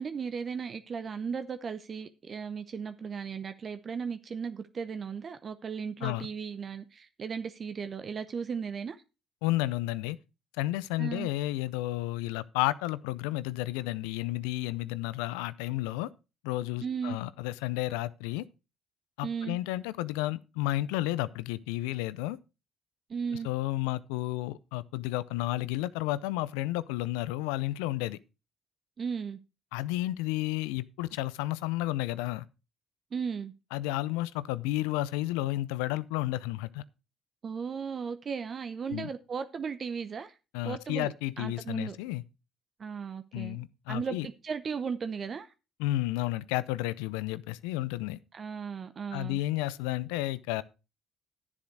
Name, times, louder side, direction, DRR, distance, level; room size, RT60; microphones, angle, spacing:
voice 1, 0.0-9.0 11.0-11.3 16.8-17.2 19.2-19.6 23.1-23.5 29.0-29.4 33.1-33.5 37.4-40.3 40.6-42.0 42.8-43.6 43.9-45.5 48.3-49.4, right 6 dB, 45° right, 0.8 m, -36 dB
voice 2, 9.4-10.2 10.6-16.1 16.4-18.4 19.2-22.4 23.4-28.2 29.7-32.5 33.7-36.8 38.9-39.1 40.5-42.2 43.3-44.3 45.8-48.2 49.1-50.6, left 16 dB, 85° left, 0.5 m, -32 dB
10.5 x 7.2 x 4.6 m
hypercardioid pair, 55°, 0 cm